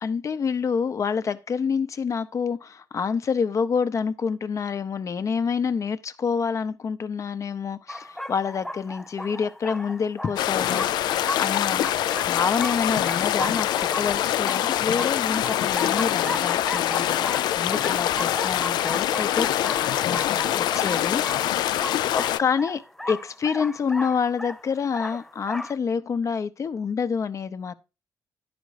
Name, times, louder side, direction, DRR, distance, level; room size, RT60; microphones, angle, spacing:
voice 1, 0.0-11.9 12.2-17.2 17.6-22.8 23.1-27.7, left 6 dB, 45° left, 0.7 m, -27 dB
sound 1, 7.9-25.8, left 1 dB, 5° left, 0.4 m, -36 dB
sound 2, 10.4-22.4, left 12 dB, 80° left, 0.3 m, -24 dB
10.0 x 5.1 x 4.8 m
cardioid pair, 90°, 7 cm